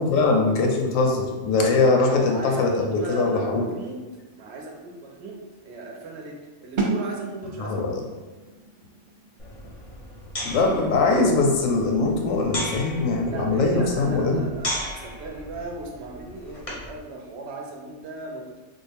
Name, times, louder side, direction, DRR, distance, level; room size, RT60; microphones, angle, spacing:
voice 1, 0.0-3.7 7.6-8.0 10.4-14.4, left 3 dB, 75° left, 1 dB, 0.9 m, -22 dB
voice 2, 2.1-4.0 4.3-7.9 13.2-18.5, right 2 dB, 60° right, 0 dB, 0.8 m, -37 dB
sound 1, 6.8-12.5, right 3 dB, 80° right, 0.4 m, -34 dB
sound 2, 9.4-17.0, left 1 dB, 35° left, 0.6 m, -36 dB
3.6 x 2.1 x 3.3 m, 1.2 s
omnidirectional pair, 1.4 m